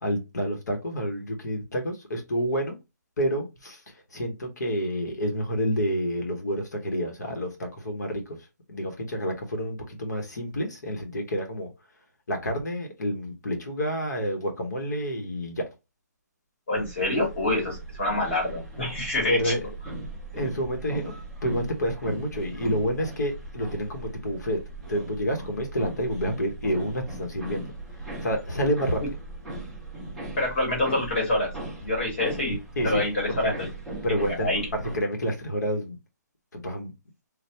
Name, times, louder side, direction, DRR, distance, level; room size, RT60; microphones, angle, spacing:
voice 1, 0.0-2.8 3.2-3.8 4.1-8.4 8.7-11.7 12.3-15.7 19.3-20.1 20.3-21.1 21.4-24.6 24.9-27.7 28.2-29.0 32.8-33.0 33.3-33.5 34.0-36.0 36.5-36.9, equal, 70° left, 1.0 m, -29 dB
voice 2, 16.7-19.5 30.4-31.5 31.8-32.6 32.8-33.7 34.1-34.6, left 2 dB, 35° left, 1.1 m, -26 dB
sound 1, 16.7-35.0, right 2 dB, ahead, 0.4 m, -39 dB
3.3 x 2.2 x 2.8 m
hypercardioid pair, 180°, 10 cm